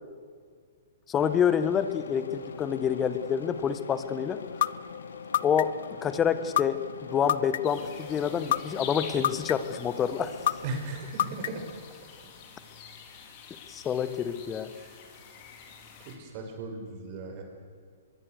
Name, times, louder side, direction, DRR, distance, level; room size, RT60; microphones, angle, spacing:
voice 1, 1.1-4.4 5.4-5.7 6.0-10.3 13.7-14.7, left 8 dB, 20° left, 12 dB, 1.5 m, -27 dB
sound 1, 1.2-10.7, left 5 dB, 80° left, 2.2 m, -43 dB
sound 2, 4.6-4.7 5.3-5.9 6.6-6.7 7.3-7.8 8.5-8.6 9.2-9.8 10.5-10.6 11.2-11.7, left 12 dB, 55° left, 0.6 m, -24 dB
sound 3, 7.6-16.2, left 6 dB, 40° left, 4.2 m, -46 dB
voice 2, 10.6-11.7 14.7-15.0 16.0-17.4, right 3 dB, 40° right, 3 dB, 6.0 m, -37 dB
23.5 x 22.5 x 6.7 m, 2.1 s
hypercardioid pair, 130°, 0 cm